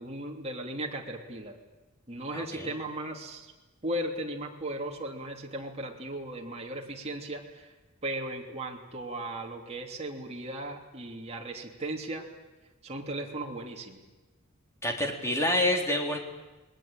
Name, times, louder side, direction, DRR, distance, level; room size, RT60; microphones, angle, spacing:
voice 1, 0.0-1.5 2.1-3.5 3.8-7.7 8.0-12.2 12.8-14.0, right 1 dB, 30° right, 0 dB, 3.0 m, -36 dB
voice 2, 2.3-2.7 14.8-16.2, left 1 dB, 15° left, 2 dB, 3.8 m, -27 dB
29.5 x 21.0 x 9.0 m, 1.1 s
head